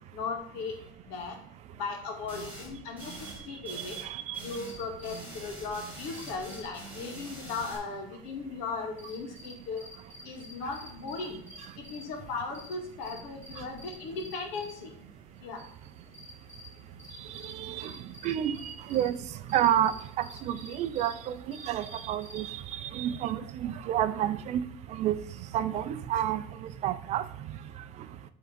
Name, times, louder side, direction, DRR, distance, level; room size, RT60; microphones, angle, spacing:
voice 1, 0.1-0.7 1.1-1.4 1.8-3.9 4.4-9.8 10.2-11.4 11.8-14.9 15.4-15.6, left 4 dB, 75° left, 2.0 m, -37 dB
sound 1, 2.3-2.7 3.0-3.4 3.6-4.1 4.3-4.8 5.0-7.8, right 2 dB, 10° right, 3.4 m, -44 dB
voice 2, 3.7-4.4 17.4-17.9 18.2-19.2 19.5-24.6 24.9-25.1 25.5-27.2, right 11 dB, 45° right, 0.5 m, -30 dB
sound 2, 4.5-22.5, left 2 dB, 15° left, 2.4 m, -52 dB
10.5 x 3.7 x 5.1 m
cardioid pair, 150°, 16 cm